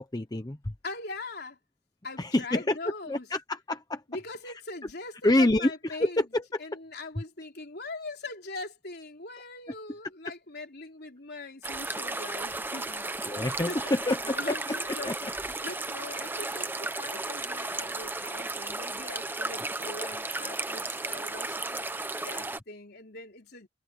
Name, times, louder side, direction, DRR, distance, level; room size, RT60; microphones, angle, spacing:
voice 1, 0.0-0.7 2.2-2.8 3.0-4.0 4.5-4.6 5.2-6.6 12.9-14.6 15.0-15.1, left 1 dB, 20° left, 0.8 m, -27 dB
voice 2, 0.8-1.6 2.0-3.3 4.1-6.2 6.6-13.4 13.7-21.9 22.2-23.7, left 3 dB, 55° left, 3.9 m, -41 dB
sound 1, 11.6-22.6, right 2 dB, 10° right, 0.9 m, -34 dB
head